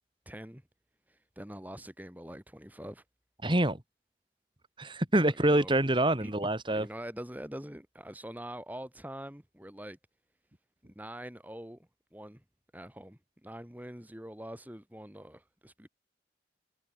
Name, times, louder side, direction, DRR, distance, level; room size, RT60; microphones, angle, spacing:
voice 1, 0.3-0.6 1.1-3.0 5.3-5.7 6.2-6.3 6.7-10.0 10.8-12.4 12.7-15.9, right 1 dB, 10° right, 3.7 m, -44 dB
voice 2, 3.4-3.8 4.8-6.9, right 1 dB, 30° right, 2.7 m, -26 dB
head